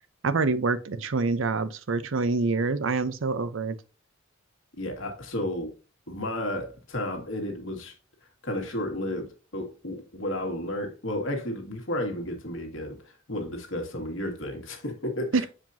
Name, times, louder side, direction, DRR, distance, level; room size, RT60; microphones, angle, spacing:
voice 1, 0.2-3.8 15.3-15.5, right 3 dB, 65° right, 0.6 m, -26 dB
voice 2, 4.8-5.7 6.1-7.9 8.4-15.5, left 1 dB, 65° left, 1.9 m, -32 dB
7.3 x 5.0 x 2.7 m
head